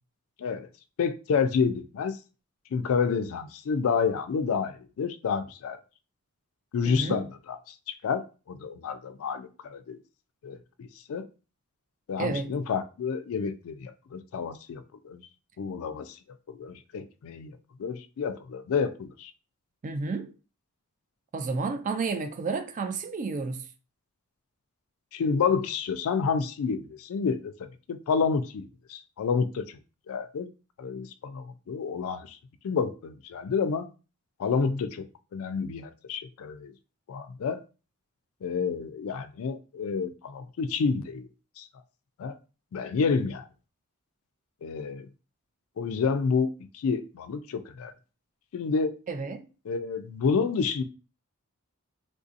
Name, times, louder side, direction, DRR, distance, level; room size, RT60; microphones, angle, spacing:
voice 1, 1.0-2.2 2.7-5.8 6.7-10.0 10.4-11.2 12.1-15.2 15.6-16.2 16.5-19.3 25.1-27.5 27.9-28.6 28.9-29.8 30.1-30.5 30.8-32.4 32.6-33.9 34.4-35.0 35.3-36.7 37.1-37.6 38.4-41.3 41.6-41.7 42.2-42.3 42.7-43.4 44.6-45.1 45.8-47.9 48.5-49.0 49.7-50.8, left 5 dB, 65° left, 0.3 m, -29 dB
voice 2, 6.9-7.2 12.2-12.5 19.8-20.3 21.3-23.6 49.1-49.4, right 4 dB, 35° right, 0.4 m, -31 dB
3.5 x 2.6 x 2.5 m
head